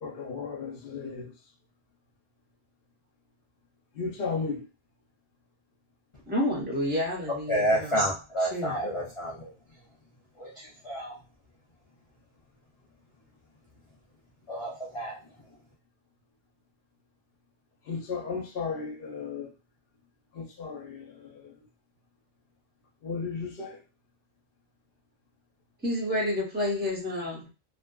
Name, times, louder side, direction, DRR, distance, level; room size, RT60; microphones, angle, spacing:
voice 1, 0.0-1.3 4.0-4.6 17.9-19.5 20.3-21.1 23.0-23.8, left 5 dB, 65° left, 0.9 m, -34 dB
voice 2, 6.3-8.9 25.8-27.5, left 1 dB, 10° right, 0.8 m, -30 dB
voice 3, 7.5-9.5 10.4-10.5 10.8-11.2 14.5-15.2, right 1 dB, 45° left, 0.4 m, -29 dB
2.6 x 2.4 x 2.3 m
omnidirectional pair, 1.1 m